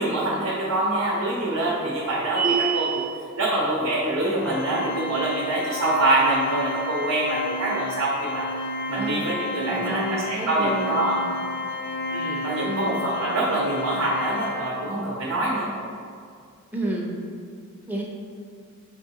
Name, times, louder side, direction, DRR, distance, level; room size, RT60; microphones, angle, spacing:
voice 1, 0.0-3.0 3.4-8.5 8.9-11.2 12.1-15.7, right 2 dB, 70° right, -4 dB, 0.7 m, -25 dB
sound 1, 2.3-3.2, right 6 dB, 40° right, 0.8 m, -24 dB
Organ, 4.4-15.2, left 2 dB, 50° left, 0.3 m, -32 dB
voice 2, 8.9-9.3 9.5-11.2 12.6-13.0 16.7-17.1 17.9-18.0, right 1 dB, 10° right, -2 dB, 0.5 m, -30 dB
4.7 x 3.5 x 2.8 m, 2.3 s
head